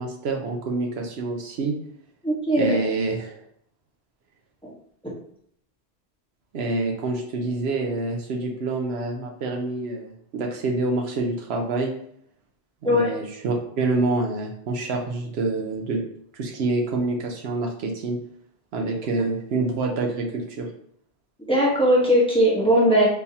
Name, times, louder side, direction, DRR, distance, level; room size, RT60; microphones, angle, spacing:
voice 1, 0.0-1.7 2.6-3.3 6.5-11.9 12.8-16.0 16.3-18.2 18.7-20.7, right 3 dB, 70° right, 1 dB, 0.8 m, -27 dB
voice 2, 2.2-2.8 12.8-13.1 21.5-23.0, equal, 5° left, -5 dB, 0.9 m, -19 dB
3.8 x 2.7 x 2.7 m, 0.69 s
omnidirectional pair, 1.1 m